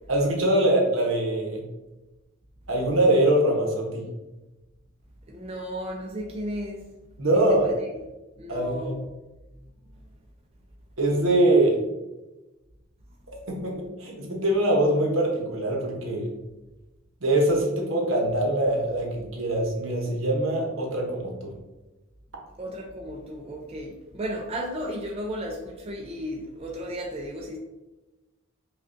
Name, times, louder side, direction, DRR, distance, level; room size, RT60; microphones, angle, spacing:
voice 1, 0.1-1.6 2.7-4.0 7.2-7.7 8.5-9.0 11.0-11.8 13.5-16.3 17.2-21.5, right 1 dB, 75° right, 0 dB, 0.8 m, -23 dB
voice 2, 5.3-6.8 7.6-7.7 8.4-9.0 22.6-27.6, equal, 30° right, 0 dB, 0.4 m, -34 dB
5.1 x 2.3 x 2.5 m, 1.1 s
head